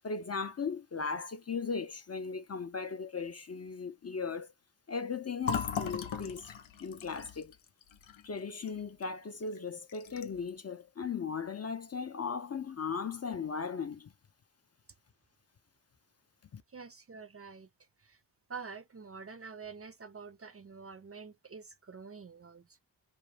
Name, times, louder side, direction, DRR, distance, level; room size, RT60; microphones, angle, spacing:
voice 1, 0.0-4.5 4.9-6.5 6.8-7.5 8.2-14.1 16.5-16.6, left 5 dB, 35° left, 0.4 m, -37 dB
Fill (with liquid), 5.4-9.1 9.4-9.6 9.9-10.5, left 7 dB, 80° left, 0.6 m, -38 dB
voice 2, 16.7-17.7 18.0-18.2 18.5-22.8, right 5 dB, 30° right, 0.4 m, -47 dB
2.4 x 2.1 x 3.2 m
cardioid pair, 40°, 46 cm